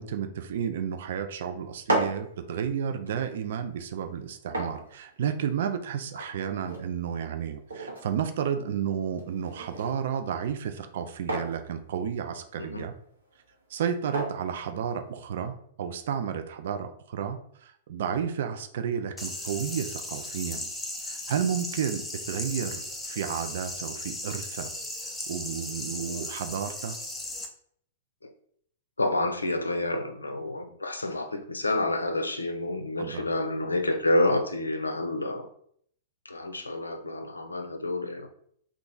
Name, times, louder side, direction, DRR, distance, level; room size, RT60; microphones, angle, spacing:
voice 1, 0.0-12.9 13.7-20.7 21.0-24.7 25.3-27.0 33.0-33.2, right 8 dB, 55° right, 8 dB, 0.3 m, -32 dB
sound 1, 1.6-15.5, right 1 dB, 75° right, 0.9 m, -38 dB
sound 2, 19.2-27.5, left 1 dB, 5° left, 0.5 m, -37 dB
voice 2, 29.0-35.5 36.3-38.3, left 1 dB, 80° left, 7 dB, 0.4 m, -29 dB
2.9 x 2.3 x 3.7 m, 0.64 s
figure-of-eight pair, 105°, 0 cm